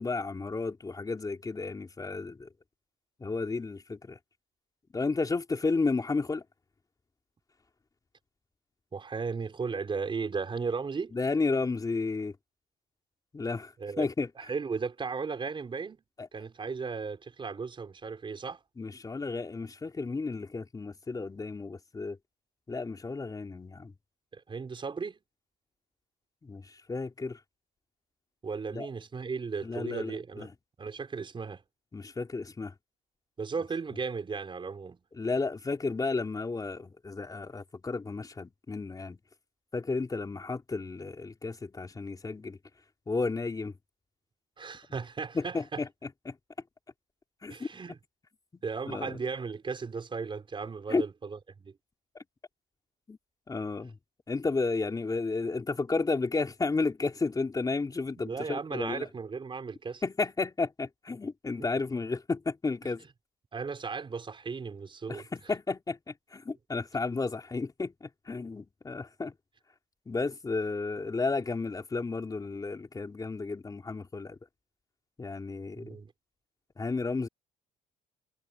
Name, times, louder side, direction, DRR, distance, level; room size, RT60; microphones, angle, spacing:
voice 1, 0.0-2.5 3.2-4.2 4.9-6.4 11.1-12.4 13.3-14.3 16.2-16.3 18.8-22.2 22.7-23.9 26.4-27.4 28.7-28.9 29.6-30.5 31.9-32.7 35.1-39.2 39.7-42.6 43.1-43.8 45.3-46.4 47.4-47.7 48.5-49.2 50.9-51.0 52.1-52.2 53.1-53.2 53.5-54.0 54.3-59.1 60.0-63.0 65.1-69.3 70.1-74.4 75.2-76.0 76.8-77.3, left 3 dB, 20° left, 3.5 m, -32 dB
voice 2, 8.9-11.2 13.8-14.1 14.4-16.0 16.3-18.6 24.3-25.2 28.4-30.5 30.8-31.6 33.4-35.0 44.6-45.8 47.5-48.0 48.6-51.7 58.2-60.0 63.5-65.3 75.8-76.1, right 5 dB, 30° right, 4.7 m, -36 dB
cardioid pair, 110°, 17 cm